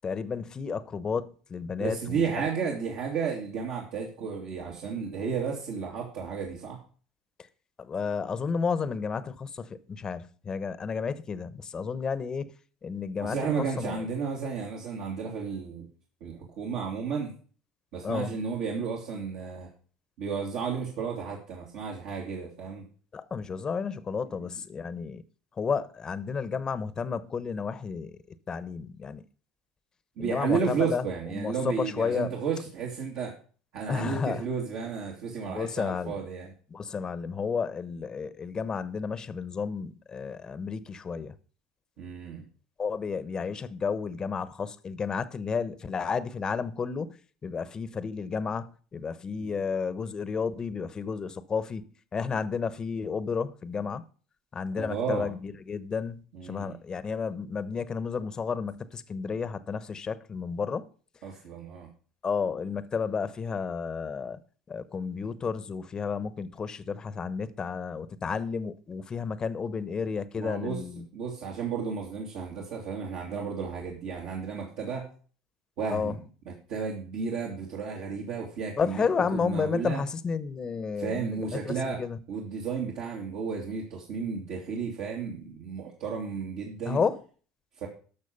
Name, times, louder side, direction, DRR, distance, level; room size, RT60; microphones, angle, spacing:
voice 1, 0.0-2.2 7.8-12.5 12.8-14.1 18.0-18.4 23.1-25.2 25.6-29.2 30.2-31.0 31.3-32.3 33.9-34.4 35.5-36.2 36.7-41.3 42.8-51.8 52.1-54.0 54.5-60.9 62.2-64.4 64.7-71.1 75.9-76.2 78.8-82.2 86.9-87.2, left 5 dB, 30° left, 1.0 m, -32 dB
voice 2, 1.8-6.8 13.2-15.9 16.2-17.3 17.9-19.7 20.2-22.8 30.2-33.4 33.7-36.5 42.0-42.4 49.4-49.5 54.8-55.3 56.3-56.7 61.2-61.9 70.4-70.8 71.1-75.1 75.8-79.0 79.3-80.0 81.0-82.0 82.3-87.0 87.8-87.9, right 6 dB, 70° right, 2.6 m, -33 dB
12.5 x 6.4 x 5.4 m
hypercardioid pair, 85°, 2 cm